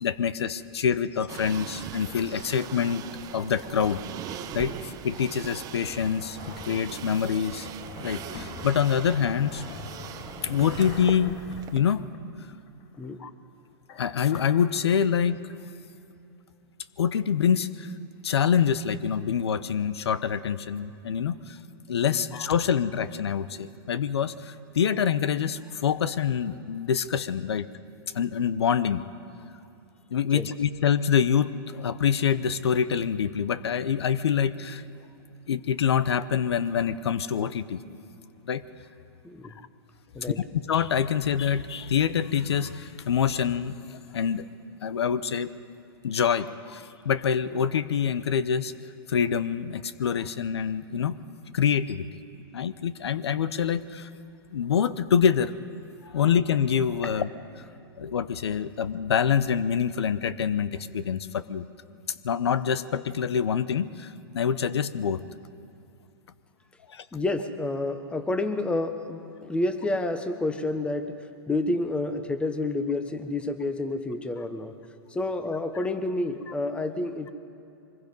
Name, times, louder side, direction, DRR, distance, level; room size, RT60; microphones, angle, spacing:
voice 1, 0.0-3.0 3.3-4.0 4.3-7.7 8.0-9.7 10.4-11.3 11.7-12.0 13.2-13.3 14.0-15.4 17.0-17.9 18.2-21.6 21.9-27.7 28.1-29.0 30.1-34.8 35.5-37.8 38.5-38.6 40.2-43.8 44.1-44.5 44.8-45.5 46.0-48.7 49.1-51.2 51.5-52.1 52.5-54.1 54.5-55.6 56.0-57.3 57.6-57.7 58.0-61.6 62.2-65.2 66.9-67.0, left 7 dB, 85° left, 16 dB, 0.8 m, -26 dB
sound 1, 1.3-11.8, right 9 dB, 25° right, 1.0 m, -40 dB
sound 2, 5.6-12.3 12.7-13.5 13.8-15.5, left 5 dB, 40° left, 1.5 m, -45 dB
voice 2, 67.1-71.1 71.5-74.7 75.1-77.3, left 2 dB, 10° left, 9 dB, 1.0 m, -29 dB
24.0 x 21.0 x 5.4 m, 2.8 s
hypercardioid pair, 135°, 13 cm